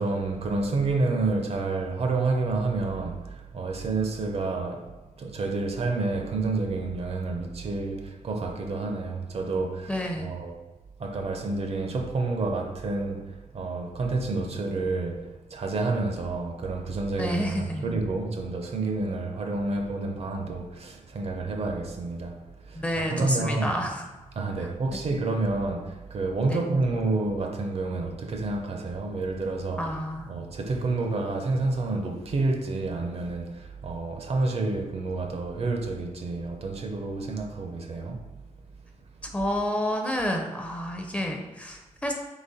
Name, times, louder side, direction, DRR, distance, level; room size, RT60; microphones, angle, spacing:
voice 1, 0.0-10.6 11.0-23.8 24.3-38.3, right 3 dB, 50° right, 0.5 m, -29 dB
voice 2, 9.9-10.3 17.2-17.9 22.7-24.1 24.6-24.7 26.5-26.6 29.8-30.3 39.3-42.1, equal, 10° left, 0.5 m, -29 dB
4.0 x 2.9 x 3.9 m
wide cardioid pair, 125°, 13 cm